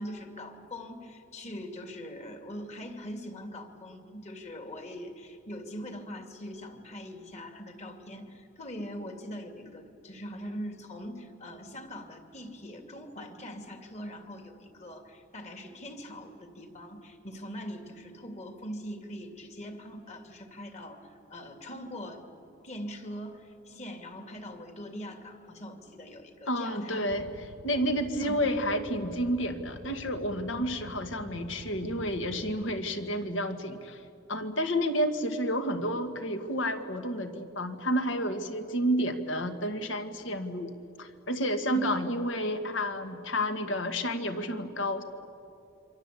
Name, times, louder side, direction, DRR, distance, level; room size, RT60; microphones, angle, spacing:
voice 1, 0.0-22.2 22.6-27.2 28.2-28.4 30.6-30.7 41.7-41.9, equal, 35° left, 5 dB, 2.6 m, -42 dB
voice 2, 26.5-27.2 27.6-34.0 34.3-40.7 41.0-45.0, equal, 60° left, 7 dB, 1.9 m, -30 dB
sound 1, 27.1-32.6, equal, 75° right, 1.4 m, -47 dB
27.5 x 25.0 x 8.5 m, 2.7 s
head